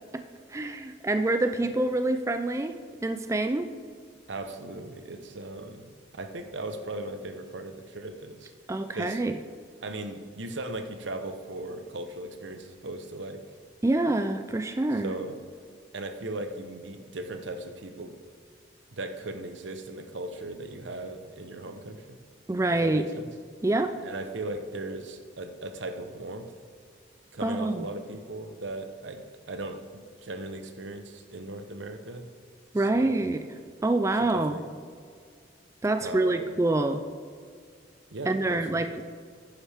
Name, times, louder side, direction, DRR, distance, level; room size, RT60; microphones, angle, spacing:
voice 1, 0.5-2.8 3.0-3.7 8.7-9.4 13.8-15.1 22.5-23.0 23.6-23.9 27.4-27.9 32.7-33.4 33.8-34.6 35.8-37.0 38.3-39.0, right 2 dB, 15° right, 8 dB, 0.3 m, -26 dB
voice 2, 4.3-5.9 6.2-8.5 8.9-9.2 9.8-13.4 14.9-15.4 15.9-18.1 18.9-22.2 22.7-23.3 24.0-26.5 27.3-32.3 32.8-33.1 34.2-34.6 36.0-36.5 38.1-38.9, right 2 dB, 80° right, 7 dB, 0.9 m, -38 dB
10.0 x 10.0 x 3.5 m, 2.1 s
head